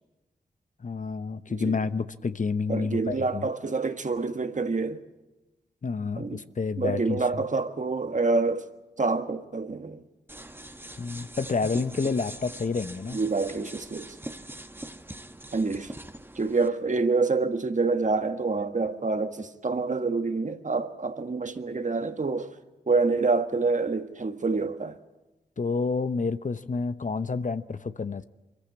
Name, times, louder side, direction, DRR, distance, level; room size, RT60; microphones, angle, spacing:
voice 1, 0.8-3.5 5.8-7.2 11.0-13.2 25.6-28.2, left 4 dB, 45° left, 0.9 m, -29 dB
voice 2, 2.7-5.0 6.2-6.4 6.8-8.7 9.0-10.0 13.1-14.1 15.5-15.9 16.3-22.5 22.9-25.0, right 3 dB, 45° right, 1.5 m, -27 dB
sound 1, 10.3-16.7, right 1 dB, 10° right, 1.2 m, -42 dB
23.0 x 15.0 x 8.7 m
cardioid pair, 45°, 18 cm